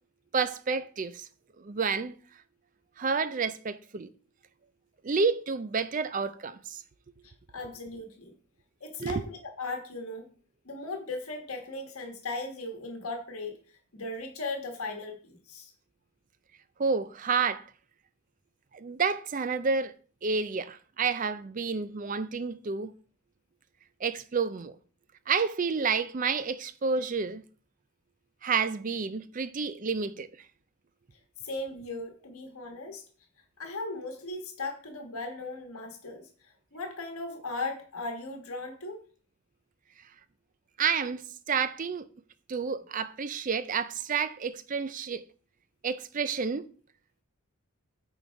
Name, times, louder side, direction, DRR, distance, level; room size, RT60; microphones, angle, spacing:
voice 1, 0.3-1.3 1.6-2.1 3.0-4.1 5.0-6.8 9.0-9.2 16.8-17.7 18.7-19.9 20.2-22.9 24.0-24.7 25.3-27.4 28.4-30.3 40.8-42.1 42.5-45.2 45.8-46.7, right 5 dB, 35° right, 0.4 m, -30 dB
voice 2, 7.2-8.3 8.8-10.3 10.6-15.7 31.4-33.0 33.6-39.0, left 2 dB, 75° left, 1.5 m, -38 dB
9.1 x 4.0 x 4.6 m
head